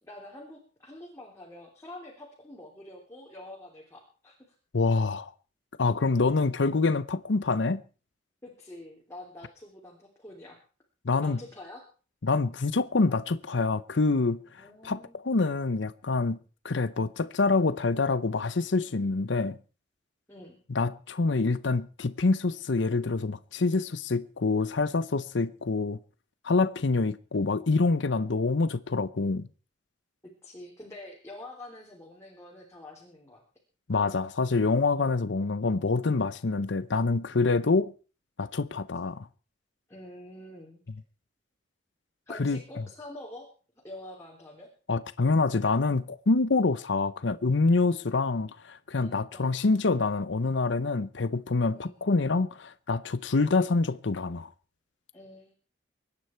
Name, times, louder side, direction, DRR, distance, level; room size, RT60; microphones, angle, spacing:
voice 1, 0.0-4.4 8.4-10.6 11.2-11.8 14.6-15.2 20.3-20.6 30.4-33.4 39.9-40.8 42.3-43.5 43.8-44.7 48.0-48.2 49.0-49.5 51.7-52.0 55.1-55.5, left 1 dB, 15° left, 3.3 m, -46 dB
voice 2, 4.7-5.3 5.8-7.8 11.0-11.4 12.2-14.4 14.8-16.4 16.6-19.6 20.7-26.0 26.4-29.5 33.9-37.9 38.4-39.3 42.3-42.6 44.9-54.5, left 3 dB, 65° left, 0.7 m, -26 dB
24.0 x 10.0 x 4.5 m
head